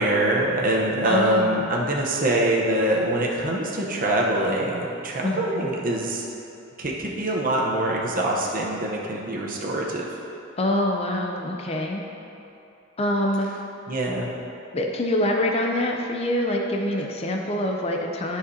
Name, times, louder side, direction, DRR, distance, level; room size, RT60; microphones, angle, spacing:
voice 1, 0.0-6.2 6.8-10.1 13.9-14.3, right 1 dB, 40° right, -2 dB, 0.9 m, -24 dB
voice 2, 1.1-1.7 5.2-5.7 10.6-12.0 13.0-13.5 14.7-18.4, left 1 dB, 30° left, 1 dB, 0.5 m, -25 dB
13.0 x 5.0 x 2.8 m, 2.8 s
head